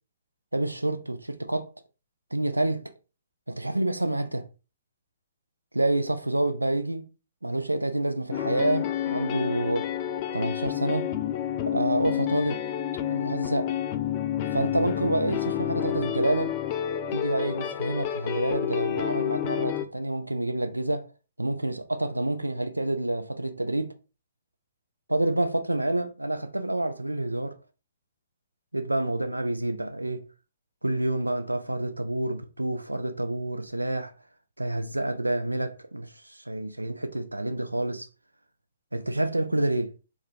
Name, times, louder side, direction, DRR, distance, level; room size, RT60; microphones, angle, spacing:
voice 1, 0.5-1.7 2.3-2.9 3.5-4.5 5.7-7.1 7.4-9.9 10.3-11.1 11.7-12.6 13.1-13.7 14.5-16.6 17.1-21.1 21.4-23.9 25.1-27.6 28.7-30.2 30.8-34.1 34.6-38.1 38.9-39.9, right 1 dB, 85° right, 0.4 m, -28 dB
sound 1, 8.3-19.9, left 11 dB, 30° left, 0.3 m, -29 dB
2.3 x 2.2 x 3.1 m
figure-of-eight pair, 120°, 0 cm